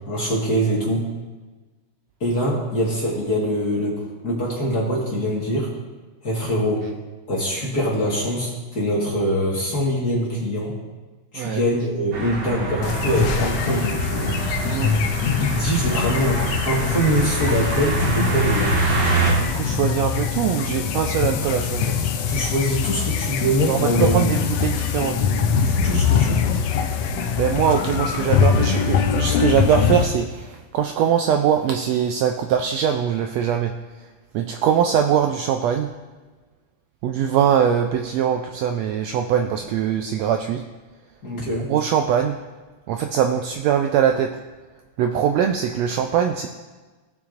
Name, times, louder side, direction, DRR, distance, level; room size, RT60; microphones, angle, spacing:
voice 1, 0.1-1.0 2.2-5.7 6.2-6.8 7.3-10.7 11.3-14.3 15.4-18.7 22.3-24.2 25.6-26.5 41.2-41.7, equal, 40° left, -5 dB, 1.7 m, -23 dB
sound 1, 12.1-19.3, right 3 dB, 65° right, 3.0 m, -25 dB
sound 2, 12.8-30.0, left 7 dB, 75° left, 1.6 m, -23 dB
voice 2, 19.4-22.0 23.7-25.3 27.4-33.7 34.3-35.9 37.0-40.6 41.7-42.4 42.9-44.3 45.0-46.5, right 8 dB, 80° right, 5 dB, 1.5 m, -22 dB
17.0 x 7.1 x 2.5 m, 1.3 s
omnidirectional pair, 3.4 m